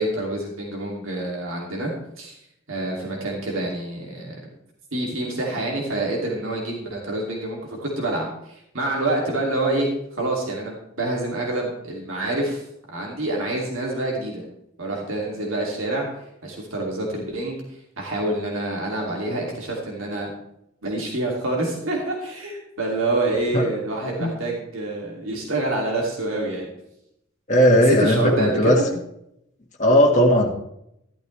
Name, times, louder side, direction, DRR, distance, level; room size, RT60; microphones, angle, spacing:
voice 1, 0.0-2.4 2.7-4.4 4.9-12.6 12.9-14.4 14.8-16.1 16.4-17.6 18.0-20.3 20.8-26.7 27.7-28.9, right 2 dB, 75° right, -2 dB, 2.7 m, -27 dB
voice 2, 27.5-28.8 29.8-30.5, equal, 35° left, 0 dB, 1.7 m, -17 dB
13.0 x 12.0 x 3.3 m, 0.78 s
head